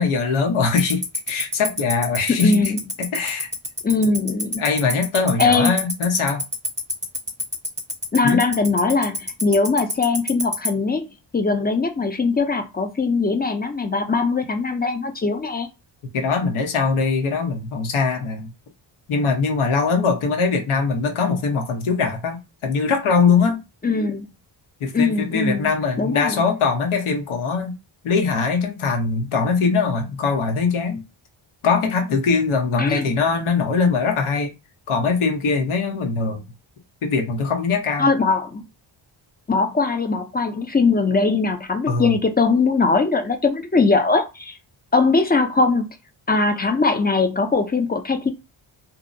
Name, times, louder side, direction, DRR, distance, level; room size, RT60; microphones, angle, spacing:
voice 1, 0.0-2.7 3.0-3.5 4.6-6.4 8.2-8.4 16.1-18.5 19.1-23.6 24.8-27.8 28.0-31.0 31.6-34.5 34.9-36.4 37.0-38.1 41.9-42.2, left 4 dB, 85° left, 0.9 m, -21 dB
Tick-tock, 0.8-10.7, right 1 dB, 15° right, 0.9 m, -24 dB
voice 2, 2.3-2.8 3.8-4.6 5.4-5.7 8.1-15.7 23.8-24.3 24.9-25.7 26.0-26.4 32.8-33.1 38.0-38.6 39.5-44.6 44.9-45.9 46.3-48.3, left 4 dB, 20° left, 0.4 m, -20 dB
2.7 x 2.0 x 2.5 m
cardioid pair, 70°, 48 cm